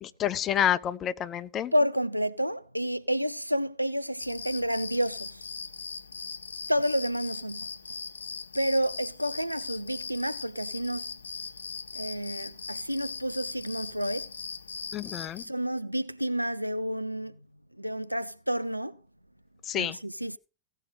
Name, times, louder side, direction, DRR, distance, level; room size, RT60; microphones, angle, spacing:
voice 1, 0.0-1.7 14.9-15.4 19.7-20.0, left 10 dB, 30° left, 0.6 m, -29 dB
voice 2, 1.7-5.5 6.7-7.7 8.5-11.1 11.9-14.3 15.4-17.4 17.8-19.0 19.7-20.4, equal, 90° right, 0.4 m, -30 dB
sound 1, 4.2-15.5, left 5 dB, 75° left, 0.4 m, -40 dB
16.5 x 5.5 x 5.0 m
figure-of-eight pair, 90°, 0 cm